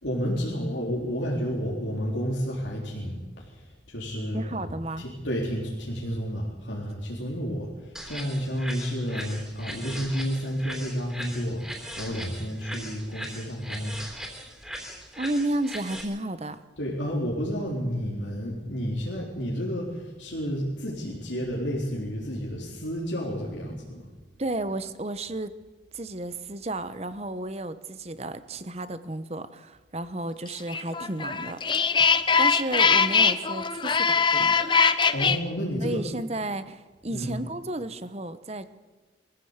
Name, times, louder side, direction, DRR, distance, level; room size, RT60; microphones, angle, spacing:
voice 1, 0.0-3.2 3.9-4.6 5.0-14.0 16.8-24.0 35.1-36.0 37.1-37.3, equal, 85° left, -3 dB, 3.6 m, -31 dB
voice 2, 4.3-5.0 15.2-16.6 24.4-25.5 25.9-31.9 32.4-34.6 35.8-38.8, right 2 dB, 35° right, 12 dB, 1.0 m, -32 dB
sound 1, 7.9-16.0, equal, 5° right, 3.4 m, -39 dB
sound 2, 30.7-35.4, left 5 dB, 25° left, 0.7 m, -22 dB
23.0 x 15.0 x 8.1 m, 1.3 s
head